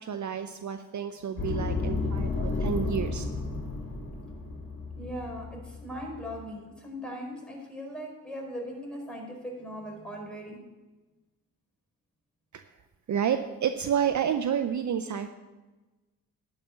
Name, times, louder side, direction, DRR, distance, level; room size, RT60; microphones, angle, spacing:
voice 1, 0.0-3.2 12.5-12.7 13.1-15.3, right 8 dB, 50° right, 9 dB, 0.7 m, -30 dB
sound 1, 1.4-6.4, left 3 dB, 30° left, 4.0 m, -32 dB
voice 2, 4.9-10.6, equal, ahead, -1 dB, 4.7 m, -39 dB
11.0 x 5.6 x 8.8 m, 1.2 s
supercardioid pair, 55°, 37 cm